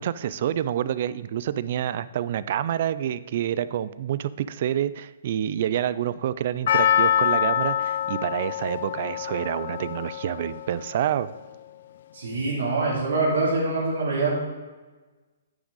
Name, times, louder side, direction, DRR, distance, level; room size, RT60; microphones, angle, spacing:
voice 1, 0.0-11.3, right 10 dB, 45° right, 16 dB, 0.3 m, -27 dB
Percussion, 6.7-11.0 11.3-11.4, left 10 dB, 55° left, 0.5 m, -25 dB
voice 2, 12.1-14.4, right 3 dB, 75° right, -9 dB, 2.9 m, -24 dB
9.7 x 6.2 x 4.0 m, 1.3 s
hypercardioid pair, 165°, 0 cm